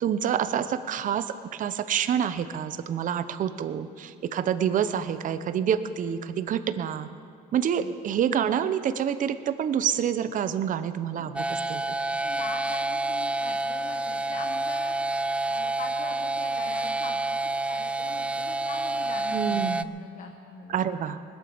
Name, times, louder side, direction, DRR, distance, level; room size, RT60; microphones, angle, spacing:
voice 1, 0.0-7.1 7.5-12.0 19.3-19.9 20.7-21.2, right 8 dB, 50° right, 11 dB, 0.8 m, -27 dB
sound 1, 11.4-19.8, right 2 dB, 5° right, 0.4 m, -28 dB
voice 2, 12.0-15.2 15.4-17.2 17.7-20.8, left 5 dB, 50° left, 3 dB, 1.4 m, -42 dB
20.0 x 8.9 x 7.1 m, 2.2 s
cardioid pair, 110°, 17 cm